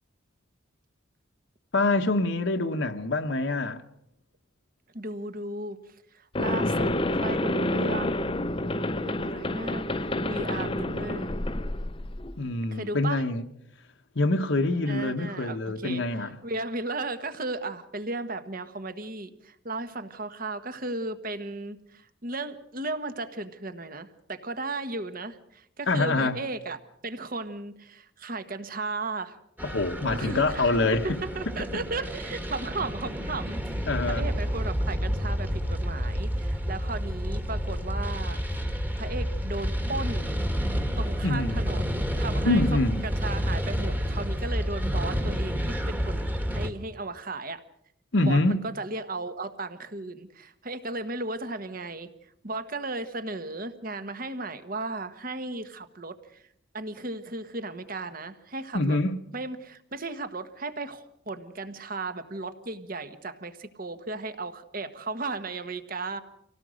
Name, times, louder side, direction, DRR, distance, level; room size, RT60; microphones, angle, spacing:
voice 1, 1.7-3.8 12.4-13.4 14.1-16.4 25.9-26.4 29.6-31.2 33.9-34.3 41.2-41.7 42.4-43.0 48.1-48.6 58.7-59.2, left 2 dB, 65° left, 1.2 m, -25 dB
voice 2, 4.9-5.8 6.1-6.9 7.2-8.3 9.0-11.3 12.7-13.2 14.9-26.8 27.0-29.4 30.1-33.6 34.1-38.4 39.0-40.3 41.0-42.6 43.0-47.6 48.2-52.1 52.4-56.4 56.7-59.0 59.3-66.2, right 2 dB, 45° right, 1.4 m, -35 dB
sound 1, 6.4-12.4, left 1 dB, 25° left, 0.7 m, -28 dB
sound 2, 29.6-46.7, equal, 10° right, 1.5 m, -29 dB
26.0 x 17.5 x 6.5 m
head